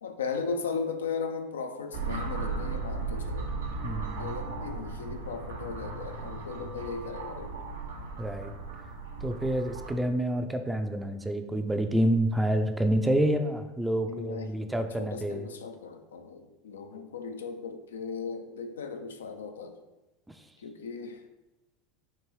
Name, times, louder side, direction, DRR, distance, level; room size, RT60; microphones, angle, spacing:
voice 1, 0.0-3.5 4.0-7.5 14.0-19.8 20.6-21.2, left 5 dB, 85° left, 7 dB, 0.3 m, -37 dB
sound 1, 1.9-9.9, right 4 dB, 85° right, 0.6 m, -36 dB
voice 2, 3.8-4.3 8.2-8.5 9.2-15.5, right 1 dB, 5° right, 7 dB, 0.4 m, -28 dB
4.5 x 2.6 x 3.2 m, 1.0 s
hypercardioid pair, 90°, 0 cm